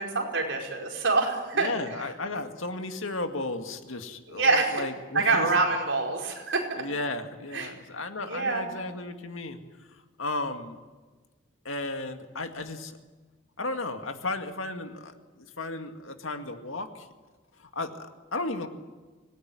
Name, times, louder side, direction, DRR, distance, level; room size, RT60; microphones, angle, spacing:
voice 1, 0.0-1.7 4.3-4.8 5.1-6.7 7.5-7.7 8.2-8.6, right 3 dB, 60° right, 1 dB, 5.0 m, -26 dB
voice 2, 1.5-5.5 6.8-9.6 10.2-10.8 11.6-13.0 13.6-17.1 17.6-18.7, left 2 dB, 85° left, 6 dB, 2.1 m, -34 dB
25.0 x 18.5 x 9.7 m, 1.3 s
head